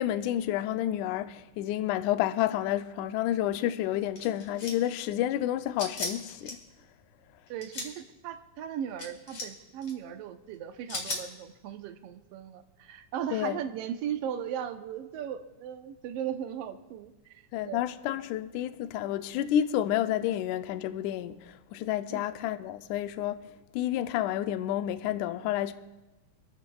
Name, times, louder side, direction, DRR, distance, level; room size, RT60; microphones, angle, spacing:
voice 1, 0.0-6.6 13.3-13.6 17.5-23.5 23.7-25.7, left 12 dB, 80° left, 2.0 m, -30 dB
sound 1, 4.2-4.9 5.8-6.5 7.5-7.9 9.0-9.5 9.8-9.9 10.9-11.2, left 3 dB, 55° left, 3.7 m, -36 dB
voice 2, 7.5-17.8 22.1-22.3, right 9 dB, 75° right, 1.4 m, -37 dB
26.0 x 14.0 x 2.3 m
omnidirectional pair, 3.7 m